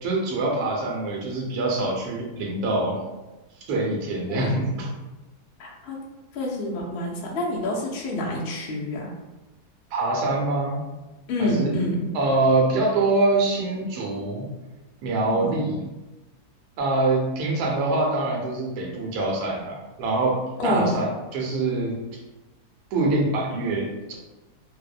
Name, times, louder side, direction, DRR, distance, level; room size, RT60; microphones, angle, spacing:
voice 1, 0.0-3.0 3.7-4.9 9.9-10.8 11.4-11.8 12.1-14.4 15.0-15.8 16.8-22.0 22.9-24.1, right 2 dB, 80° right, -1 dB, 1.1 m, -24 dB
voice 2, 5.6-6.0 6.3-9.1 11.3-12.1 15.3-15.5 20.6-21.0, left 1 dB, 80° left, -3 dB, 0.5 m, -27 dB
2.7 x 2.0 x 2.4 m, 1.1 s
omnidirectional pair, 1.7 m